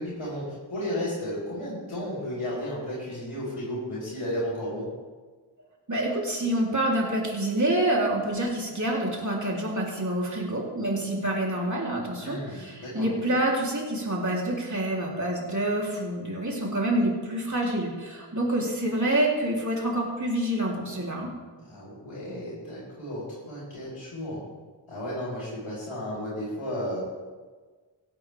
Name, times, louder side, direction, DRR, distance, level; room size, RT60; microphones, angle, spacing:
voice 1, 0.0-4.9 12.2-13.3 21.6-24.4 24.9-27.0, equal, 85° left, -10 dB, 5.0 m, -33 dB
voice 2, 5.9-21.3, right 1 dB, 35° right, -3 dB, 3.7 m, -27 dB
17.0 x 11.5 x 3.6 m, 1.4 s
wide cardioid pair, 50°, 49 cm